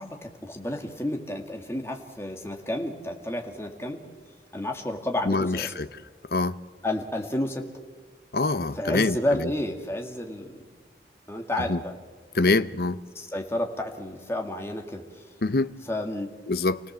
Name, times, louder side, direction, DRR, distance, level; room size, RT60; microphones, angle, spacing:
voice 1, 0.0-4.0 4.5-5.7 6.8-7.6 8.7-10.7 11.3-12.0 12.5-12.7 13.1-15.2 15.8-16.3, left 1 dB, 15° left, 2.2 m, -31 dB
voice 2, 5.3-5.9 6.3-6.5 8.3-9.2 11.7-11.8 12.4-13.0 15.4-15.7 16.5-16.8, left 3 dB, 55° left, 0.7 m, -24 dB
29.0 x 17.5 x 7.4 m
head